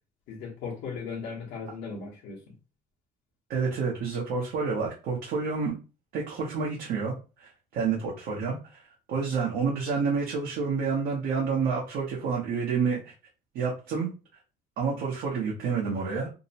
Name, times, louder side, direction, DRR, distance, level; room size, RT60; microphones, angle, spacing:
voice 1, 0.3-2.5, left 5 dB, 85° left, 0.9 m, -37 dB
voice 2, 3.5-5.7 6.1-7.1 7.4-8.8 9.1-13.1 13.5-14.1 14.8-16.3, right 5 dB, 80° right, 0.8 m, -29 dB
2.7 x 2.0 x 2.7 m
cardioid pair, 110°, 17 cm